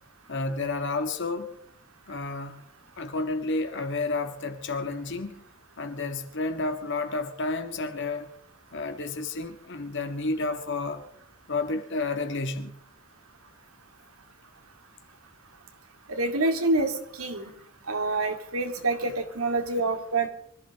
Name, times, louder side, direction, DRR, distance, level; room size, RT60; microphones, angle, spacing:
voice 1, 0.3-1.5 2.1-2.6 3.0-5.3 5.8-8.3 8.7-11.0 11.5-12.7 19.0-19.1, left 3 dB, 60° left, 1.9 m, -31 dB
voice 2, 16.1-17.5 17.9-20.3, right 2 dB, 85° right, 2.4 m, -27 dB
24.5 x 14.5 x 3.7 m
head